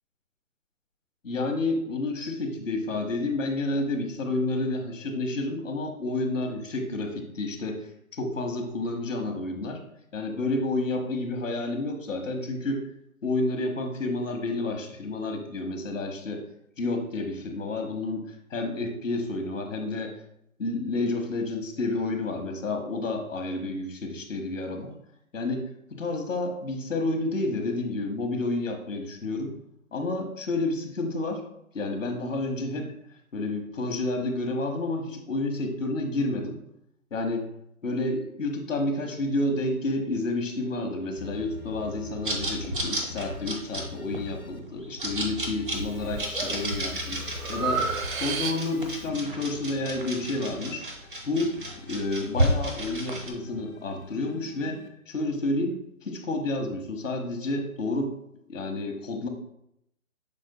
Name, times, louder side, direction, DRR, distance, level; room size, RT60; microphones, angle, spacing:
voice 1, 1.2-9.8 10.1-12.8 13.2-16.4 16.8-20.1 20.6-24.9 25.3-29.5 29.9-31.4 31.7-32.9 33.3-36.6 37.1-37.5 37.8-47.2 47.5-47.8 48.2-50.9 51.2-51.6 51.9-58.1 58.5-59.3, left 2 dB, 65° left, 4 dB, 1.0 m, -30 dB
sound 1, 41.2-44.6 45.0-50.6 51.0-54.9, left 6 dB, 90° left, 0.8 m, -44 dB
sound 2, 42.3-53.3, right 1 dB, 40° right, 0.6 m, -32 dB
Breathing, 45.7-46.2 46.7-49.0, right 5 dB, 70° right, 0.8 m, -31 dB
5.9 x 3.8 x 2.2 m, 0.77 s
hypercardioid pair, 180°, 42 cm